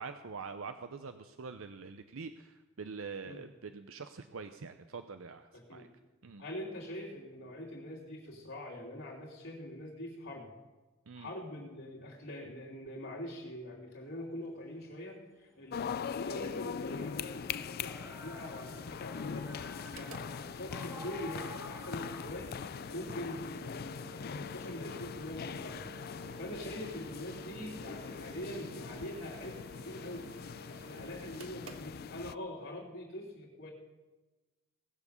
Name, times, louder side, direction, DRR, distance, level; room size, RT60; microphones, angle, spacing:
voice 1, 0.0-5.9 6.2-6.4 11.1-11.3, right 5 dB, 70° right, 8 dB, 0.7 m, -45 dB
voice 2, 5.5-5.9 6.4-10.5 11.1-25.9 26.4-33.7, left 1 dB, 70° left, -6 dB, 3.3 m, -44 dB
sound 1, 14.1-14.2 16.7-22.3, left 1 dB, 15° right, 1.8 m, -50 dB
sound 2, 15.7-32.4, left 7 dB, 50° left, 0.3 m, -42 dB
Mechanical fan, 19.7-32.6, right 2 dB, 90° right, 1.4 m, -52 dB
19.0 x 7.2 x 7.0 m, 1.2 s
head